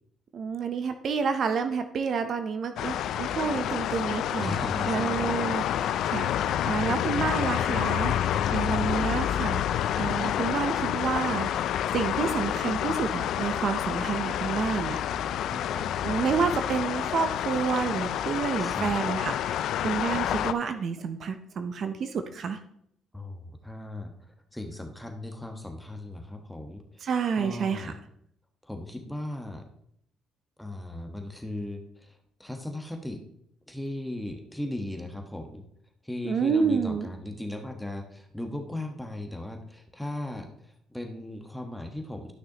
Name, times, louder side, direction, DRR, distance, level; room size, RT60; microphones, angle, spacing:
voice 1, 0.3-11.5 11.9-15.0 16.0-22.6 27.0-27.9 36.2-37.1, right 6 dB, 55° right, 8 dB, 0.6 m, -29 dB
sound 1, 2.8-20.5, left 10 dB, 75° left, 0.3 m, -28 dB
voice 2, 4.4-5.5 8.3-8.8 15.1-16.0 18.6-18.9 23.1-24.1 24.5-27.1 27.4-28.0 28.7-29.6 30.6-32.1 32.4-33.2 33.7-35.6 36.0-40.5 40.9-42.3, left 1 dB, 5° left, 4 dB, 1.2 m, -37 dB
12.0 x 6.1 x 2.9 m, 0.71 s
cardioid pair, 90°, 0 cm